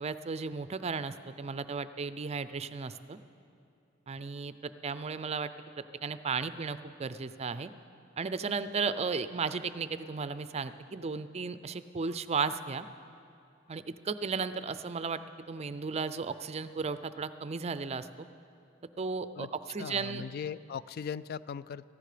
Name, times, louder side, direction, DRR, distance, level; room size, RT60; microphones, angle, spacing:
voice 1, 0.0-3.2 4.1-5.5 6.0-7.7 8.2-12.9 13.7-15.2 15.5-18.3 19.0-20.2, right 5 dB, 30° right, 13 dB, 0.5 m, -35 dB
voice 2, 19.8-21.9, left 7 dB, 50° left, 18 dB, 0.3 m, -39 dB
18.0 x 14.5 x 5.0 m, 2.6 s
head